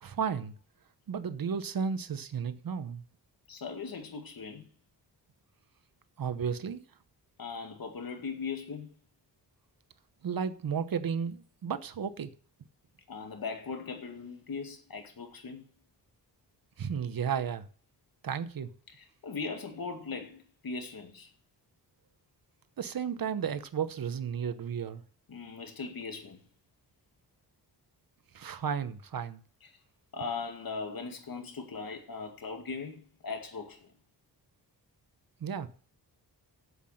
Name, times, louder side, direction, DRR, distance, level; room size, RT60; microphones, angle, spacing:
voice 1, 0.0-0.5 1.1-3.0 6.2-6.8 10.2-12.3 16.8-17.7 18.2-18.7 22.8-25.0 28.3-29.4 35.4-35.7, right 7 dB, 55° right, 1.0 m, -33 dB
voice 2, 3.5-4.7 7.4-8.9 13.1-15.7 18.9-21.3 25.3-26.4 29.6-29.7 30.1-33.9, left 4 dB, 55° left, 2.1 m, -39 dB
8.1 x 7.7 x 7.7 m
wide cardioid pair, 100°, 41 cm